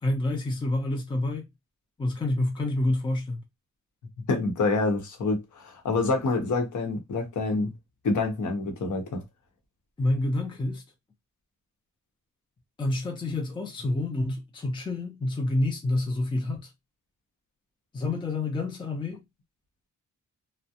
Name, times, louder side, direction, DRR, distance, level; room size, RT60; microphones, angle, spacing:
voice 1, 0.0-1.4 2.0-3.4 10.0-10.8 12.8-16.7 17.9-19.2, left 2 dB, 15° left, 0.5 m, -28 dB
voice 2, 4.3-7.7 8.0-9.2, left 3 dB, 70° left, 0.9 m, -27 dB
2.3 x 2.0 x 2.7 m
cardioid pair, 85°, 31 cm